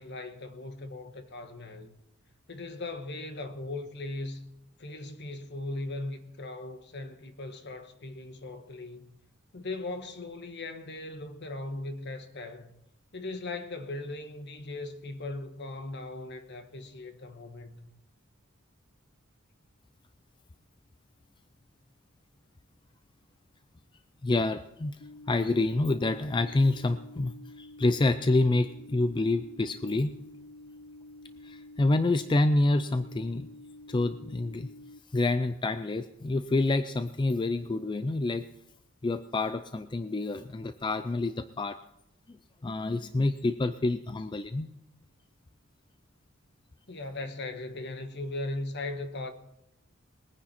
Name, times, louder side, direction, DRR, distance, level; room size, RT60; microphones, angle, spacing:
voice 1, 0.0-1.9 2.5-4.5 4.8-9.2 9.5-12.7 13.1-17.9 46.9-49.3, left 2 dB, 55° left, 1.3 m, -38 dB
voice 2, 24.2-25.0 25.3-30.1 31.4-33.5 33.9-34.7 35.1-38.4 39.0-41.8 42.3-42.4 42.6-44.7, left 2 dB, 20° left, 0.4 m, -27 dB
sound 1, 25.0-35.0, left 2 dB, 70° left, 0.6 m, -49 dB
21.0 x 9.9 x 4.3 m
head